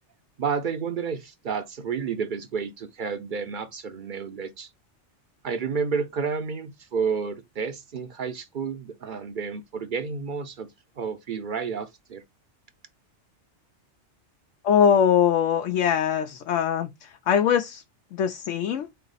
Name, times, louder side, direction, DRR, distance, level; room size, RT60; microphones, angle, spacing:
voice 1, 0.4-4.7 5.4-10.7 11.0-12.2, right 5 dB, 50° right, 0.7 m, -30 dB
voice 2, 14.6-17.8 18.1-18.9, left 8 dB, 85° left, 1.0 m, -22 dB
4.0 x 3.3 x 3.9 m
omnidirectional pair, 1.2 m